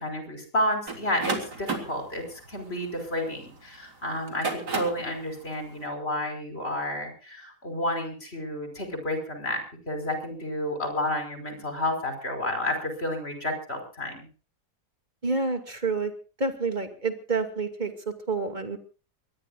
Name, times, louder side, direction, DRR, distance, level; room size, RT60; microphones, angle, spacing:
voice 1, 0.0-14.3, left 1 dB, 35° left, 6 dB, 5.6 m, -31 dB
sound 1, 0.9-3.6 4.2-5.1, right 3 dB, 80° right, 4.1 m, -32 dB
voice 2, 15.2-16.1 16.4-18.8, right 4 dB, 25° right, 6 dB, 2.5 m, -28 dB
23.5 x 20.5 x 2.5 m, 0.36 s
omnidirectional pair, 1.7 m